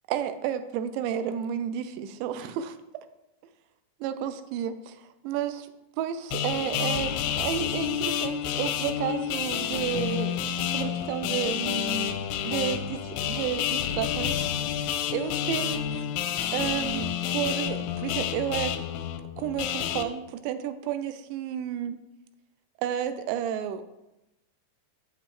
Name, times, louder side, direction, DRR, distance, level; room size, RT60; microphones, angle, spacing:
voice 1, 0.1-3.1 4.0-5.7 6.0-10.4 10.7-12.2 12.4-14.4 15.1-16.1 16.5-18.8 19.4-22.0 22.8-23.8, right 9 dB, 85° right, 10 dB, 2.7 m, -31 dB
sound 1, 6.3-20.0, left 9 dB, 85° left, 2.9 m, -29 dB
8.8 x 8.7 x 3.2 m, 0.93 s
omnidirectional pair, 5.3 m